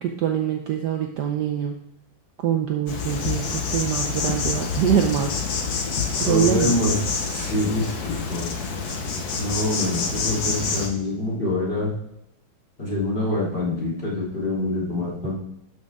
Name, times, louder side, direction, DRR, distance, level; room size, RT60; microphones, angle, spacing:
voice 1, 0.0-1.7 2.4-3.5 3.7-5.4 6.2-6.8, right 9 dB, 65° right, 3 dB, 1.2 m, -24 dB
Insect, 2.9-10.9, left 5 dB, 50° left, 1.5 m, -27 dB
voice 2, 6.2-8.5 9.4-11.9 12.8-15.3, left 2 dB, 25° left, -6 dB, 3.2 m, -25 dB
12.0 x 6.5 x 3.6 m, 0.79 s
omnidirectional pair, 2.3 m